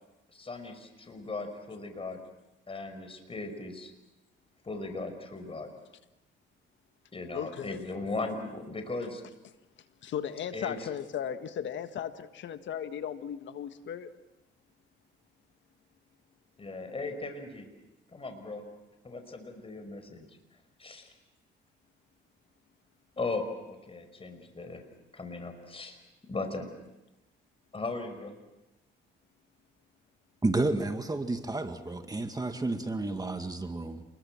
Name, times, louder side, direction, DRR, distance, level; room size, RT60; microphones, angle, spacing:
voice 1, 0.3-2.2 2.7-3.9 4.7-5.7 7.1-9.2 10.5-10.8 16.6-17.7 18.1-18.7 19.0-20.3 20.8-21.1 23.2-24.8 25.1-26.0 26.3-26.7 27.7-28.4, left 3 dB, 30° left, 7 dB, 5.2 m, -37 dB
voice 2, 7.3-7.8 10.0-14.1, left 9 dB, 70° left, 10 dB, 1.6 m, -36 dB
voice 3, 30.4-34.0, right 2 dB, 20° right, 7 dB, 2.1 m, -31 dB
29.0 x 21.5 x 7.5 m, 0.99 s
cardioid pair, 90°, 20 cm